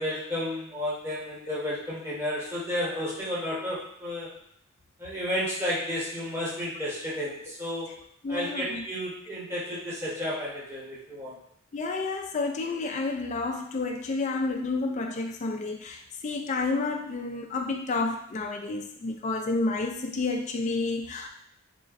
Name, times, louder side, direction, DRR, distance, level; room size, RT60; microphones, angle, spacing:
voice 1, 0.0-4.3 5.0-7.9 8.3-11.4, left 1 dB, 10° right, -8 dB, 1.1 m, -32 dB
voice 2, 8.2-8.8 11.7-21.3, left 3 dB, 35° left, 2 dB, 0.3 m, -30 dB
3.7 x 3.0 x 2.5 m, 0.68 s
head